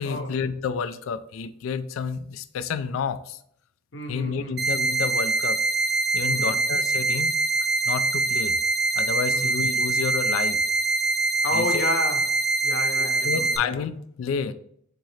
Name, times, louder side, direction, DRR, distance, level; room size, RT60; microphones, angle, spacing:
voice 1, 0.0-3.4 4.1-5.6 6.1-7.3 7.9-8.5 9.0-10.6 11.5-11.9 13.0-14.5, left 6 dB, 80° left, 0.3 m, -30 dB
voice 2, 3.9-4.6 6.2-6.6 9.3-9.6 11.4-13.8, left 2 dB, 60° left, 0.7 m, -31 dB
sound 1, 4.6-13.6, right 3 dB, 50° right, 0.5 m, -24 dB
3.9 x 3.7 x 3.1 m
head